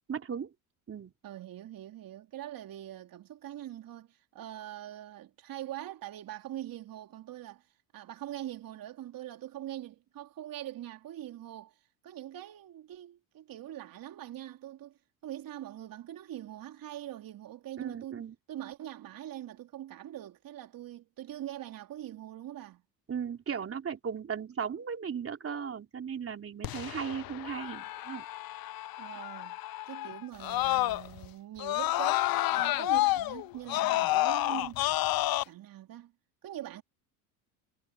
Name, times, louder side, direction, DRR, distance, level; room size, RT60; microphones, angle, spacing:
voice 1, 0.1-0.5 0.9-1.1 17.8-18.3 23.1-28.2, right 7 dB, 30° right, 3.1 m, -36 dB
voice 2, 1.2-7.7 7.9-22.8 29.0-29.6 29.9-34.9 35.4-36.1 36.4-36.8, right 12 dB, 50° right, 3.2 m, -43 dB
Screaming, 26.6-31.2 31.6-35.4, left 17 dB, 50° left, 1.2 m, -30 dB
hypercardioid pair, 75°, 44 cm